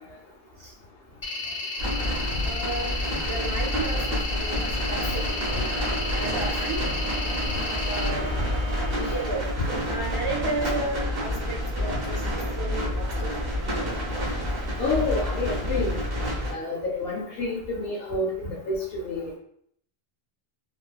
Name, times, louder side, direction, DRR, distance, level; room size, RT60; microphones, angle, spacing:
sound 1, 1.2-8.1, left 3 dB, 40° left, 0.4 m, -33 dB
sound 2, 1.8-16.5, equal, 65° right, 1.0 m, -29 dB
voice 1, 2.4-5.7 6.1-7.6 7.9-8.4 8.9-9.5 9.9-13.8, right 2 dB, 40° right, -2 dB, 0.5 m, -34 dB
Bowed string instrument, 4.7-9.5, right 2 dB, 85° right, 1.5 m, -40 dB
voice 2, 14.8-15.9 16.5-18.8 19.0-19.4, left 2 dB, 75° left, -5 dB, 0.9 m, -28 dB
3.3 x 2.3 x 2.2 m, 0.68 s
omnidirectional pair, 1.0 m